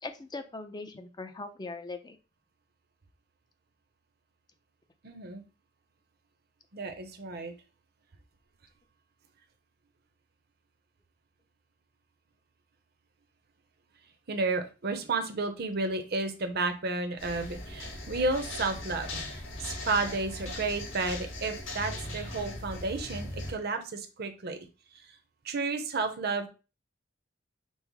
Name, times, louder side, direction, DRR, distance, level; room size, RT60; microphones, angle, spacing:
voice 1, 0.0-2.2, left 3 dB, 20° left, 7 dB, 0.5 m, -40 dB
voice 2, 5.0-5.4 6.7-7.5 14.3-24.6 25.4-26.5, right 3 dB, 55° right, 6 dB, 0.7 m, -32 dB
sound 1, 17.2-23.5, left 1 dB, 85° left, 1.7 m, -39 dB
5.4 x 2.0 x 4.7 m, 0.32 s
head